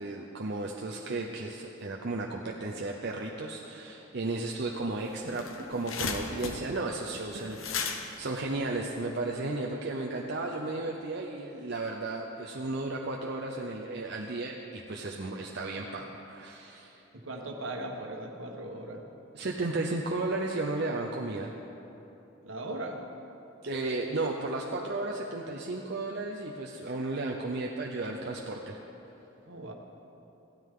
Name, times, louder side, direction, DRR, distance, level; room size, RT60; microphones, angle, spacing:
voice 1, 0.0-17.0 19.3-21.5 23.6-28.8, right 2 dB, 55° right, -1 dB, 0.7 m, -34 dB
sound 1, 4.8-4.9 5.1-9.4, left 5 dB, 80° left, 1.0 m, -36 dB
voice 2, 17.1-19.0 22.4-23.0 29.4-29.7, right 1 dB, 75° right, 2 dB, 1.4 m, -38 dB
16.0 x 12.5 x 3.8 m, 3.0 s
head